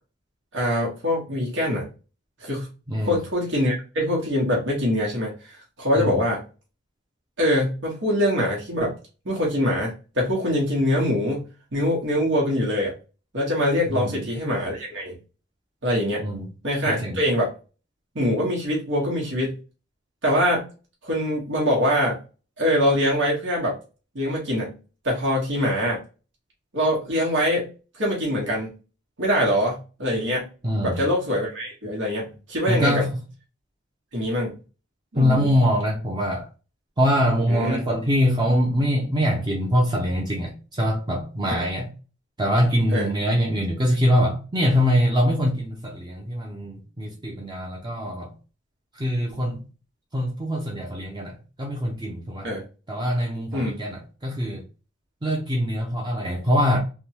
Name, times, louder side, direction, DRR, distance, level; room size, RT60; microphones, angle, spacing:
voice 1, 0.5-1.9 2.4-2.7 3.0-6.4 7.4-8.9 9.2-11.4 11.7-12.9 13.3-15.1 15.8-16.3 16.6-17.5 18.1-19.6 20.2-20.7 21.0-22.2 22.6-23.8 24.1-24.7 25.0-26.0 26.7-27.7 27.9-28.7 29.2-30.5 30.8-33.0 34.1-34.5 35.1-35.5 37.5-37.8 41.5-41.6 42.9-43.1 52.4-52.6 53.5-53.8, equal, 80° right, 1.2 m, -23 dB
voice 2, 13.9-14.2 16.2-16.5 16.9-17.2 30.6-31.0 32.7-33.1 35.2-36.5 37.0-41.9 42.4-48.3 49.0-49.6 50.1-52.5 52.9-54.6 55.2-56.8, equal, 20° right, 0.6 m, -23 dB
3.4 x 2.2 x 2.8 m
head